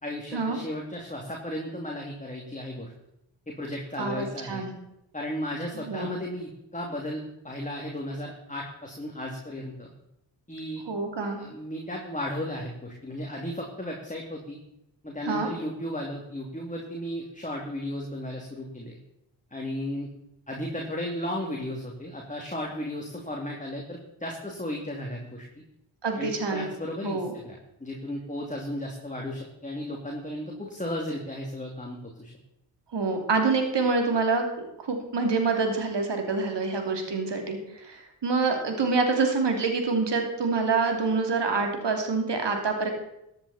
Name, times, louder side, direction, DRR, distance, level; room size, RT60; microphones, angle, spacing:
voice 1, 0.0-2.9 3.5-4.6 5.1-9.9 10.5-10.8 11.4-14.6 15.0-19.0 19.5-20.1 20.5-25.5 26.2-32.3, left 1 dB, 15° left, -1 dB, 2.7 m, -35 dB
voice 2, 4.0-4.7 5.8-6.2 10.9-11.4 15.3-15.5 26.0-26.7 27.0-27.3 32.9-42.9, right 4 dB, 60° right, 4 dB, 3.0 m, -26 dB
14.5 x 10.0 x 4.3 m, 0.83 s
supercardioid pair, 40°, 48 cm